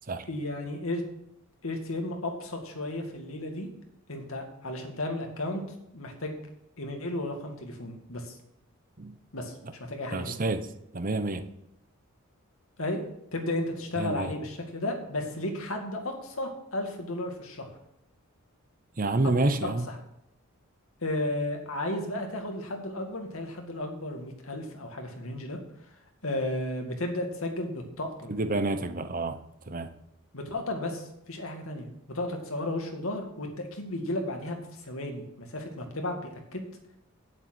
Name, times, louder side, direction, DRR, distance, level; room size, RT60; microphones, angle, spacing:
voice 1, 0.3-1.0 1.6-3.7 4.1-5.6 5.9-6.4 6.8-8.4 9.3-10.4 12.8-13.0 13.3-17.7 19.6-20.0 21.0-25.6 26.2-28.3 30.3-36.6, left 1 dB, 75° left, 3 dB, 2.2 m, -34 dB
voice 2, 10.1-10.6 10.9-11.4 14.0-14.3 19.0-19.9 28.3-29.9, right 2 dB, 40° right, 10 dB, 0.8 m, -29 dB
8.9 x 7.6 x 7.9 m, 0.79 s
head